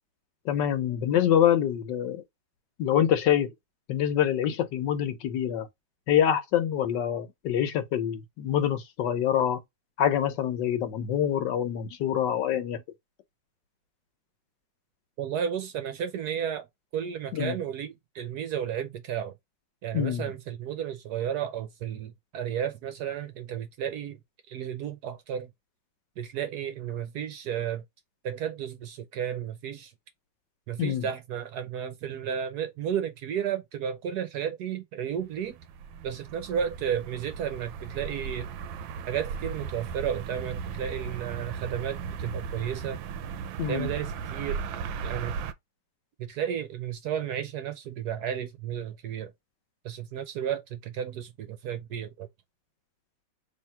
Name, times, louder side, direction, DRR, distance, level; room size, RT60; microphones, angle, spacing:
voice 1, 0.5-2.2 2.8-3.5 3.9-5.7 6.1-9.6 10.0-12.8 17.3-17.5 19.9-20.3 30.8-31.1 43.6-43.9, left 10 dB, 70° left, 1.3 m, -25 dB
voice 2, 15.2-16.7 16.9-19.3 19.8-24.2 24.5-25.5 26.2-27.8 28.2-29.9 30.7-35.6 36.0-38.5 39.1-43.0 43.7-44.6 45.0-45.3 46.3-49.3 49.8-52.3, right 9 dB, 65° right, 1.1 m, -33 dB
sound 1, 35.2-45.5, right 6 dB, 85° right, 1.3 m, -36 dB
3.4 x 2.9 x 4.3 m
omnidirectional pair, 2.0 m